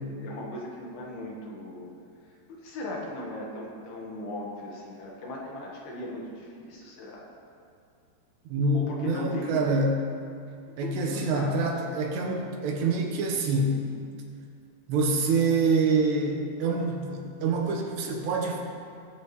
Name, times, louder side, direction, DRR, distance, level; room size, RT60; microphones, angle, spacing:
voice 1, 0.0-1.9 2.6-7.3 8.7-9.7 10.8-11.9, left 2 dB, 70° left, -2 dB, 3.1 m, -38 dB
voice 2, 8.5-10.0 10.8-13.8 14.9-18.6, right 3 dB, 75° right, 0 dB, 3.2 m, -26 dB
20.0 x 7.9 x 3.1 m, 2.5 s
omnidirectional pair, 5.0 m